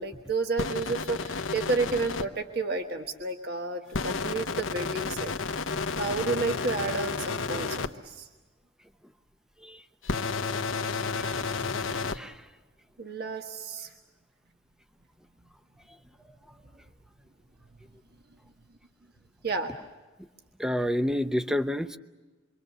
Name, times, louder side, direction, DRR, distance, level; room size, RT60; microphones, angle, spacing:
voice 1, 0.0-5.3 6.0-8.3 13.0-13.9 19.4-19.7, right 3 dB, 55° right, 5 dB, 1.4 m, -31 dB
sound 1, 0.6-2.2 3.9-7.9 10.0-12.2, left 4 dB, 85° left, 1.1 m, -31 dB
voice 2, 11.9-12.3 20.6-22.0, left 1 dB, 5° right, 10 dB, 0.8 m, -29 dB
27.0 x 23.5 x 6.8 m, 1.2 s
head